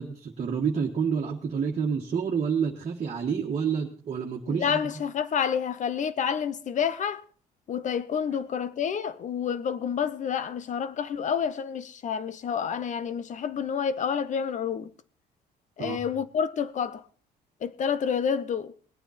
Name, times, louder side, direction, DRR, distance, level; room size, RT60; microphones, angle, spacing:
voice 1, 0.0-4.8 15.8-16.0, right 6 dB, 40° right, 1.7 m, -28 dB
voice 2, 4.5-7.2 7.7-14.9 15.8-17.0 17.6-18.7, left 7 dB, 45° left, 1.0 m, -29 dB
20.0 x 9.1 x 4.3 m
cardioid pair, 110°, 17 cm